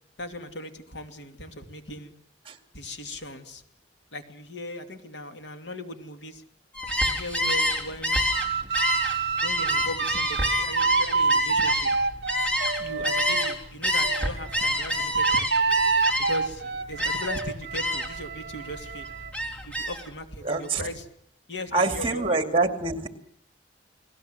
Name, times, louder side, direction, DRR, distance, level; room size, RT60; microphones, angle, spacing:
voice 1, 0.2-2.1 2.7-3.6 4.1-6.4 7.0-8.2 9.4-12.0 12.8-15.5 16.2-19.1 19.6-21.0 21.5-22.4, left 1 dB, 70° left, 7 dB, 2.8 m, -38 dB
Gull seagull, 6.7-13.5 13.8-16.5 17.0-17.4 17.7-18.2 18.6-20.1, left 1 dB, 5° left, 3.9 m, -27 dB
sound 1, 8.3-13.6 14.0-19.3, right 4 dB, 55° right, 1.2 m, -27 dB
voice 2, 20.4-20.9 21.7-23.1, right 3 dB, 30° right, 8 dB, 2.3 m, -25 dB
29.5 x 20.5 x 8.0 m, 0.66 s
head